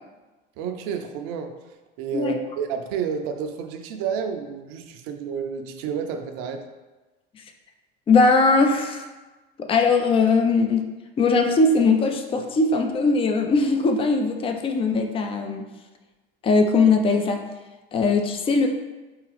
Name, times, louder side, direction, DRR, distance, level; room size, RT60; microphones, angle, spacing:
voice 1, 0.6-1.6 2.0-6.6, right 7 dB, 45° right, 6 dB, 0.5 m, -30 dB
voice 2, 8.1-9.0 9.6-10.9 11.2-15.7 16.4-17.5 17.9-18.7, left 3 dB, 20° left, 4 dB, 0.4 m, -20 dB
4.7 x 3.0 x 3.3 m, 1.2 s
figure-of-eight pair, 75°, 30 cm